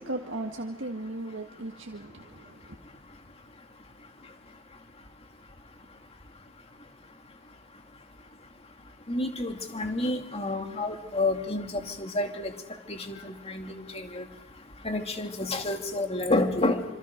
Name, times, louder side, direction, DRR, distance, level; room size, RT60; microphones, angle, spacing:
voice 1, 0.0-2.8, right 2 dB, 75° right, 1.9 m, -37 dB
voice 2, 9.1-12.5 12.9-14.3 14.8-16.8, left 2 dB, 30° left, 2.4 m, -29 dB
27.5 x 26.5 x 5.3 m
head